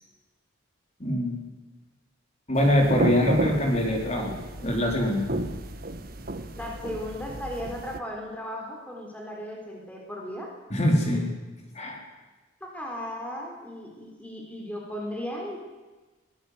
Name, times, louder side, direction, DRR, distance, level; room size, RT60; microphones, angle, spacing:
voice 1, 1.0-1.4 2.5-4.3 4.6-5.3 10.7-11.3 11.7-12.0, left 1 dB, 35° left, 1 dB, 4.5 m, -23 dB
sound 1, 2.6-8.0, right 1 dB, 50° right, 1.5 m, -32 dB
voice 2, 6.6-10.5 12.6-15.6, equal, 10° left, -1 dB, 3.9 m, -36 dB
22.5 x 18.0 x 8.0 m, 1.2 s
head